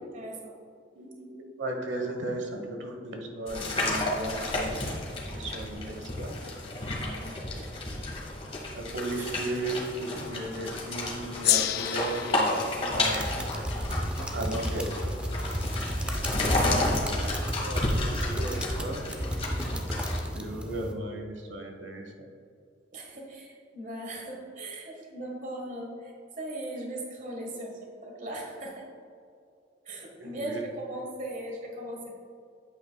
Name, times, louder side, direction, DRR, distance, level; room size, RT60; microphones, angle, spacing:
voice 1, 0.1-0.6 7.0-7.4 16.6-16.8 17.1-17.7 22.9-28.9 29.8-32.2, right 1 dB, 45° right, 0 dB, 1.4 m, -39 dB
voice 2, 0.9-4.9 5.3-6.3 8.7-13.2 14.3-15.0 16.1-16.3 17.7-19.7 20.3-22.3 30.2-30.6, right 2 dB, 75° right, 2 dB, 1.2 m, -36 dB
sound 1, 3.5-20.2, left 2 dB, 30° left, 1.5 m, -32 dB
Gong, 11.4-16.2, left 14 dB, 55° left, 0.3 m, -32 dB
sound 2, 12.9-20.9, equal, 5° right, 0.6 m, -33 dB
8.9 x 8.2 x 2.3 m, 2.4 s
head